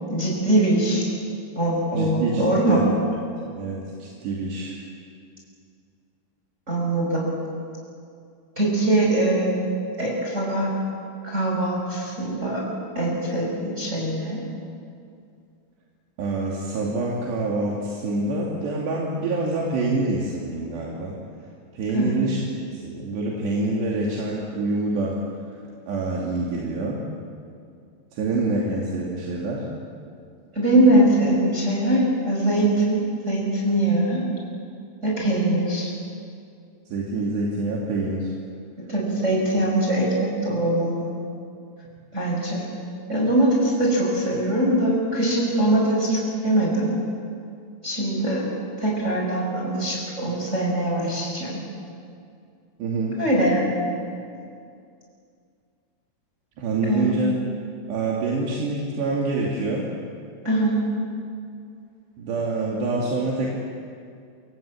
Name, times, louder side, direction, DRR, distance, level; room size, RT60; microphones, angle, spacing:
voice 1, 0.1-1.0 1.6-2.8 6.7-7.3 8.6-9.7 10.0-10.7 11.2-12.6 12.9-14.4 21.9-22.1 30.5-34.2 35.0-35.9 38.9-41.1 42.1-42.7 43.1-46.9 47.8-48.4 48.8-51.6 53.2-53.8 56.9-57.1 60.4-60.8, right 1 dB, 15° right, -3 dB, 5.8 m, -22 dB
voice 2, 1.9-2.8 3.6-4.8 16.2-21.1 21.7-25.1 25.9-27.0 28.1-29.6 36.9-38.3 52.8-53.2 56.6-57.4 57.9-59.9 62.2-63.5, right 2 dB, 80° right, -3 dB, 4.9 m, -26 dB
28.5 x 24.5 x 8.6 m, 2.4 s
omnidirectional pair, 4.9 m